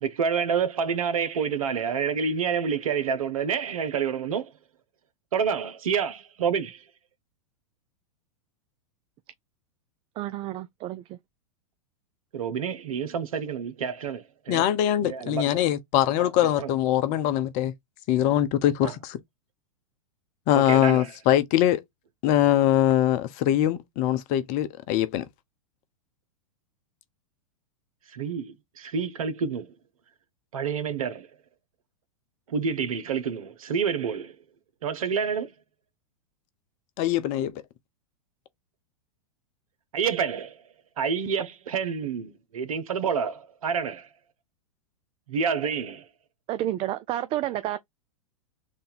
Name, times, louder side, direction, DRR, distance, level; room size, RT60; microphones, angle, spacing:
voice 1, 0.0-4.5 5.3-6.8 12.3-14.6 15.0-15.4 16.2-16.3 16.6-16.7 18.8-18.9 20.5-21.1 28.1-29.7 30.5-31.3 32.5-34.4 34.8-35.5 39.9-40.5 41.0-44.1 45.3-46.0, right 6 dB, 80° right, 1.0 m, -28 dB
voice 2, 10.2-11.2 46.5-47.8, right 13 dB, 30° right, 0.4 m, -30 dB
voice 3, 14.5-17.7 18.1-19.2 20.5-21.8 22.2-25.2 37.0-37.6, left 12 dB, 45° left, 0.8 m, -23 dB
3.6 x 2.7 x 4.0 m
hypercardioid pair, 110°, 18 cm